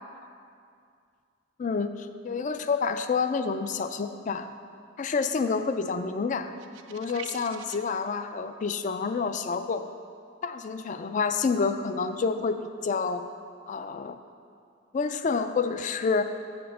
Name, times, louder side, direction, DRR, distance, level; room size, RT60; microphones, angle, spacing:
voice 1, 1.6-1.9 2.2-4.5 5.0-6.5 6.9-9.9 10.4-13.3 13.7-14.2 14.9-16.2, left 5 dB, 40° left, 10 dB, 0.3 m, -28 dB
sound 1, 6.6-7.9, right 7 dB, 75° right, 0.4 m, -44 dB
7.3 x 4.4 x 6.7 m, 2.3 s
head